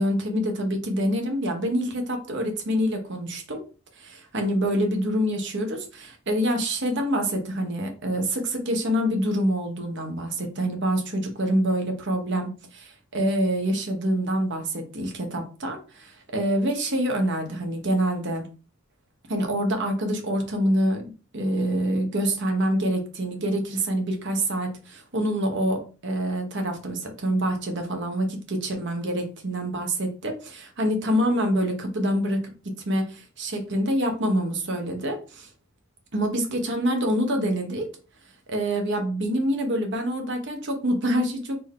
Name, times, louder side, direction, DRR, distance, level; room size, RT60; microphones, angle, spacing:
voice 1, 0.0-3.6 4.0-18.5 19.3-32.5 32.8-35.5 36.1-37.9 38.5-41.6, equal, 60° right, 4 dB, 1.2 m, -26 dB
4.4 x 3.0 x 3.6 m, 0.34 s
head